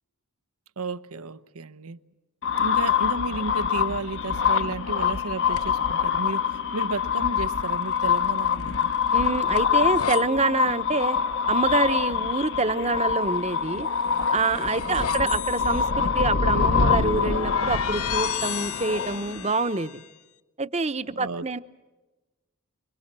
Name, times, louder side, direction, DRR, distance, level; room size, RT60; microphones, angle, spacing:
voice 1, 0.8-2.0 2.6-8.9 14.8-15.3 21.1-21.6, right 3 dB, 90° right, 0.9 m, -33 dB
sound 1, 2.4-19.5, left 6 dB, 55° left, 0.9 m, -25 dB
sound 2, 5.5-5.9 7.8-10.2 13.7-20.1, left 6 dB, 85° left, 0.9 m, -35 dB
voice 2, 9.1-11.2 11.5-13.9 14.3-19.9 20.6-21.6, right 3 dB, 30° right, 0.9 m, -26 dB
26.0 x 25.0 x 7.5 m
head